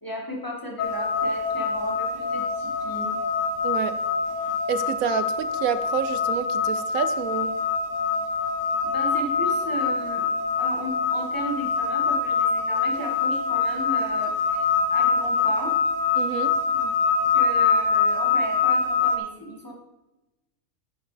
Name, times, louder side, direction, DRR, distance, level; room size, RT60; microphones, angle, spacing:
voice 1, 0.0-3.2 8.8-10.3 10.5-15.8 16.7-17.1 17.3-19.7, equal, 15° left, -2 dB, 1.6 m, -35 dB
sound 1, 0.8-19.2, left 5 dB, 75° left, 1.2 m, -24 dB
voice 2, 3.6-3.9 4.7-7.6 16.2-16.5, right 8 dB, 85° right, 12 dB, 1.1 m, -28 dB
9.6 x 9.0 x 3.3 m, 1.0 s
omnidirectional pair, 1.4 m